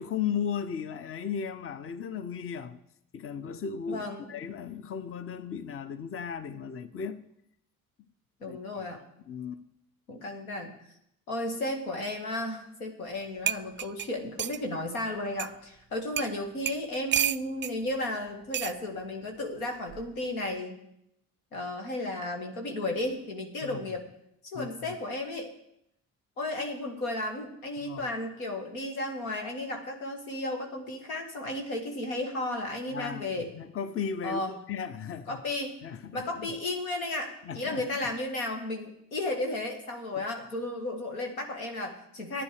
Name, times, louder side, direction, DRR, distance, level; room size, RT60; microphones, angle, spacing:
voice 1, 0.0-2.8 3.1-7.2 8.4-8.8 9.3-9.6 23.6-23.8 24.5-24.8 27.8-28.1 32.9-35.4 35.8-36.5 37.4-37.9 40.1-40.2, left 7 dB, 35° left, 0.7 m, -36 dB
voice 2, 3.9-4.3 8.4-9.0 10.1-10.8 11.3-20.8 21.5-24.1 24.4-25.5 26.4-33.5 34.2-34.5 35.3-35.8 36.1-42.4, left 1 dB, 85° left, 1.5 m, -34 dB
sound 1, 13.1-13.2 13.5-14.6 15.4-15.5 16.2-16.3 16.7-17.7 18.5-18.8 19.9-20.2, right 11 dB, 30° right, 0.4 m, -30 dB
11.0 x 9.7 x 4.9 m
hypercardioid pair, 45°, 41 cm